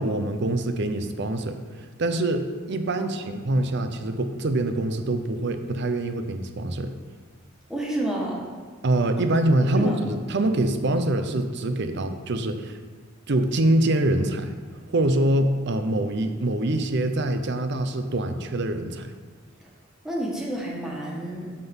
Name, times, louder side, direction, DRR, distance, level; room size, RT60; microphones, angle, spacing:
voice 1, 0.0-1.6 2.0-6.9 8.8-12.8 13.3-14.5 14.9-19.1, right 1 dB, 60° right, 8 dB, 0.7 m, -24 dB
voice 2, 7.7-8.4 9.7-10.0 19.6-19.7 20.0-21.5, right 1 dB, 5° right, -4 dB, 1.6 m, -30 dB
9.5 x 3.8 x 7.1 m, 1.5 s
head